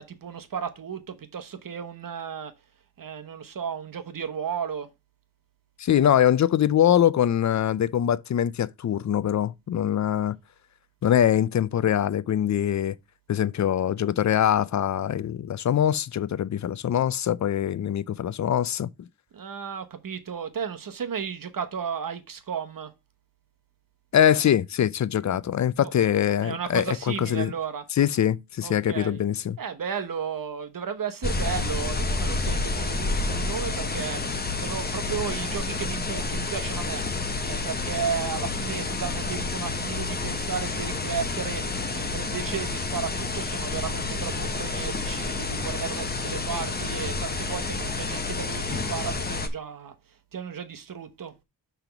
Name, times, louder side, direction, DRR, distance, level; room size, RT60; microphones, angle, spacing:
voice 1, 0.0-2.5 3.0-4.9 19.3-22.9 25.8-25.9 26.4-27.8 28.6-29.2 29.6-49.9 50.3-51.4, right 7 dB, 60° right, 1.0 m, -34 dB
voice 2, 5.8-10.4 11.0-13.0 13.3-19.1 24.1-27.5 28.0-29.6, left 10 dB, 50° left, 0.4 m, -23 dB
sound 1, 31.2-49.5, left 3 dB, 25° left, 0.9 m, -29 dB
5.9 x 3.5 x 5.7 m
wide cardioid pair, 105°, 38 cm